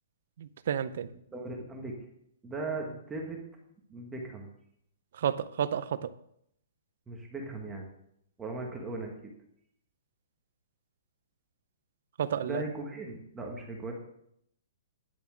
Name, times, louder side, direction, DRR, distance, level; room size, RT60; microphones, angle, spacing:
voice 1, 0.4-1.1 5.2-6.1 12.2-12.6, right 9 dB, 45° right, 14 dB, 0.6 m, -31 dB
voice 2, 1.3-2.0 2.4-3.4 3.9-4.5 7.1-7.9 8.4-9.3 12.4-13.9, right 2 dB, 5° right, 0 dB, 1.2 m, -38 dB
10.5 x 6.9 x 6.1 m, 0.73 s
hypercardioid pair, 180°, 0 cm